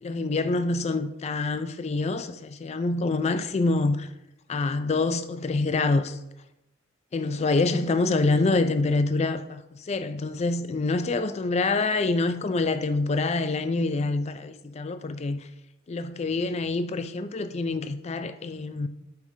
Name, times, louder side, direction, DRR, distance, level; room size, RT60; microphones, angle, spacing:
voice 1, 0.0-4.1 4.5-6.2 7.1-9.6 9.9-15.4 15.9-18.9, left 3 dB, 30° left, 0.3 m, -26 dB
8.1 x 4.9 x 2.7 m
head